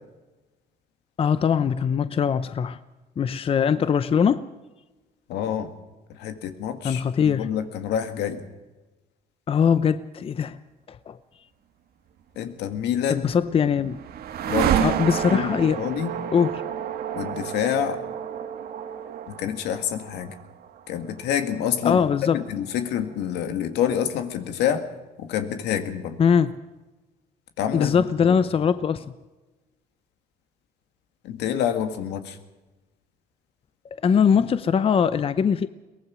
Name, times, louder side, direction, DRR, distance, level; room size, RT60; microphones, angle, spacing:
voice 1, 1.2-2.8 3.2-4.5 6.8-7.5 9.5-10.6 10.9-11.2 13.1-14.0 14.8-15.8 16.3-16.6 21.8-22.4 26.2-26.5 27.7-29.1 34.0-35.7, left 7 dB, 35° left, 14 dB, 0.7 m, -21 dB
voice 2, 5.3-5.7 6.2-8.4 12.4-13.3 14.5-14.9 15.3-16.1 17.1-18.0 19.3-20.3 20.9-22.1 22.3-24.9 25.2-26.2 27.6-28.4 31.2-32.4, left 9 dB, 85° left, 8 dB, 1.9 m, -27 dB
sound 1, 13.1-23.1, right 10 dB, 65° right, 1.5 m, -30 dB
22.5 x 19.0 x 6.2 m, 1.1 s
cardioid pair, 110°, 17 cm